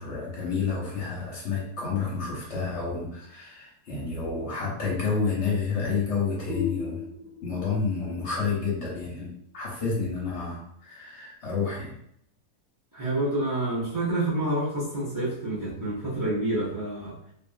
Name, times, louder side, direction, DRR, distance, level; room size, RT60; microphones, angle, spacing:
voice 1, 0.0-7.0 7.4-11.9, left 5 dB, 50° left, -5 dB, 1.1 m, -30 dB
sound 1, 6.5-9.9, left 5 dB, 70° right, 1.0 m, -37 dB
voice 2, 12.9-17.2, right 1 dB, 20° right, -8 dB, 0.6 m, -28 dB
2.8 x 2.5 x 2.4 m, 0.73 s
omnidirectional pair, 1.6 m